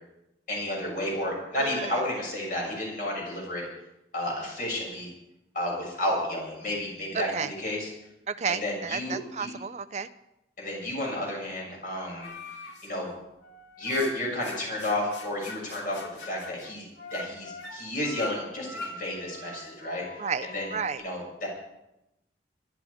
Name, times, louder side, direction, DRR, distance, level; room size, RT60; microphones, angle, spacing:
voice 1, 0.5-3.7 4.1-5.1 5.5-7.3 7.6-7.9 8.5-9.5 10.6-12.3 12.8-13.1 13.8-20.0 20.5-20.6 21.0-21.5, left 1 dB, 50° left, -2 dB, 6.9 m, -31 dB
voice 2, 1.6-2.0 7.1-7.5 8.3-10.1 20.2-21.0, right 6 dB, 40° right, 13 dB, 0.5 m, -32 dB
sound 1, 12.2-12.9 13.4-20.9, left 3 dB, 85° left, 2.1 m, -42 dB
21.5 x 11.5 x 4.9 m, 0.92 s
head